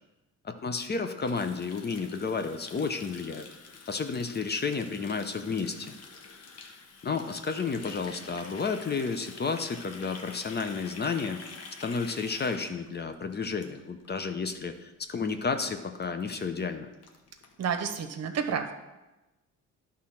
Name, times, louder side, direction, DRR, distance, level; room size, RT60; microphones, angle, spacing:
voice 1, 0.4-3.5 3.9-5.9 7.0-11.4 11.8-16.9, left 5 dB, 35° left, 7 dB, 0.7 m, -31 dB
Water tap faucet, 1.2-14.2 14.5-14.7 15.0-15.4 15.6-15.7 15.9-16.0 16.4-16.5 16.7-17.8, left 4 dB, 55° left, 1.1 m, -48 dB
voice 2, 17.6-18.8, right 7 dB, 55° right, 6 dB, 0.9 m, -30 dB
10.5 x 3.7 x 5.7 m, 1.0 s
cardioid pair, 90°, 30 cm